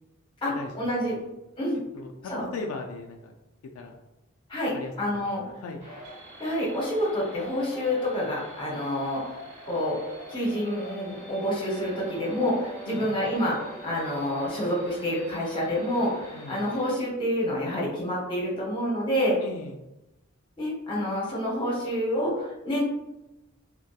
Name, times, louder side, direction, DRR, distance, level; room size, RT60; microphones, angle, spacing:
voice 1, 0.4-1.1 1.6-1.8 2.3-2.4 4.5-5.4 6.4-9.2 9.7-10.0 10.3-19.4 20.6-22.8, equal, 25° left, -5 dB, 0.8 m, -28 dB
voice 2, 1.9-3.3 3.7-4.0 4.7-5.8 12.8-13.1 16.3-16.6 19.4-19.8, left 3 dB, 80° left, 3 dB, 0.3 m, -38 dB
sound 1, 5.8-16.9, left 1 dB, 30° right, 1.0 m, -45 dB
sound 2, 10.2-14.9, right 3 dB, 85° right, 1.0 m, -45 dB
2.7 x 2.2 x 2.3 m, 0.95 s
head